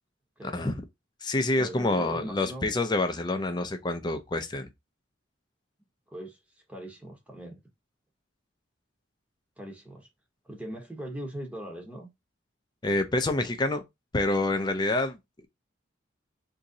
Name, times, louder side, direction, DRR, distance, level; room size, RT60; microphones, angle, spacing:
voice 1, 0.4-0.8 1.2-4.7 12.8-13.8 14.1-15.2, left 2 dB, 20° left, 0.4 m, -27 dB
voice 2, 1.6-2.7 6.1-7.6 9.6-10.1 10.4-12.1, right 1 dB, 5° right, 0.8 m, -40 dB
2.9 x 2.7 x 3.7 m
head